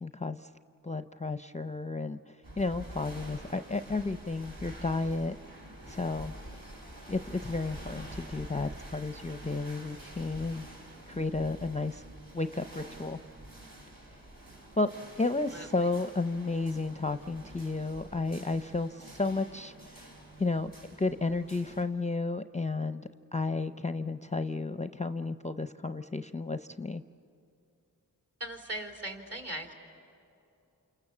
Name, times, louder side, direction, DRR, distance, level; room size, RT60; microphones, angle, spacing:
voice 1, 0.0-0.5 0.8-5.4 5.9-6.3 7.1-10.7 11.1-12.0 12.3-13.2 14.8-14.9 15.2-20.1 20.4-20.7 21.0-27.0, left 3 dB, 20° left, 10 dB, 0.6 m, -32 dB
sound 1, 2.4-21.8, right 1 dB, 70° right, 4.7 m, -47 dB
voice 2, 28.4-29.7, right 1 dB, 45° right, 2 dB, 3.7 m, -39 dB
28.5 x 28.0 x 7.2 m, 2.7 s
wide cardioid pair, 45°, 36 cm